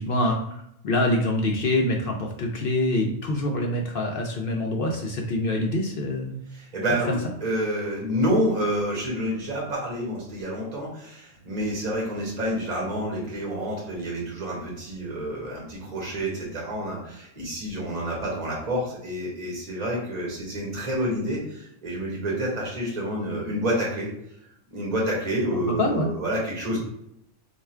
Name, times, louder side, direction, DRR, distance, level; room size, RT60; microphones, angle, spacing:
voice 1, 0.0-6.3 6.9-7.0 25.8-26.1, left 1 dB, 60° left, 1 dB, 0.6 m, -25 dB
voice 2, 6.5-24.1 24.7-26.8, equal, 30° right, -3 dB, 1.2 m, -28 dB
3.4 x 2.4 x 4.3 m, 0.76 s
omnidirectional pair, 1.4 m